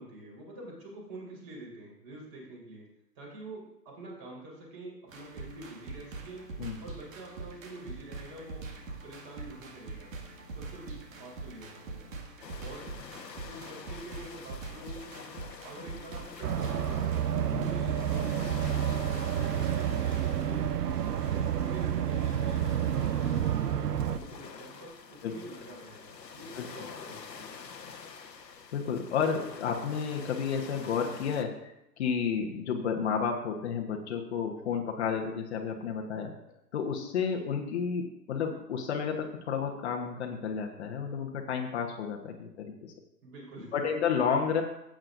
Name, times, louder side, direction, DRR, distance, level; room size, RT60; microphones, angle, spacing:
voice 1, 0.0-2.9 3.2-6.4 6.8-8.6 9.0-10.1 10.5-11.8 12.6-12.9 13.5-15.3 15.6-20.6 21.2-27.6 43.2-43.8, right 2 dB, 25° right, -2 dB, 4.2 m, -47 dB
sound 1, 5.1-24.2, right 3 dB, 50° right, 2.2 m, -43 dB
sound 2, 12.4-31.4, left 5 dB, 80° left, 1.4 m, -47 dB
sound 3, 16.4-24.2, right 9 dB, 70° right, 0.7 m, -29 dB
voice 2, 28.7-36.3 36.7-42.9 43.7-44.6, left 6 dB, 40° left, 2 dB, 1.3 m, -31 dB
15.5 x 8.9 x 2.6 m, 0.85 s
figure-of-eight pair, 135°, 49 cm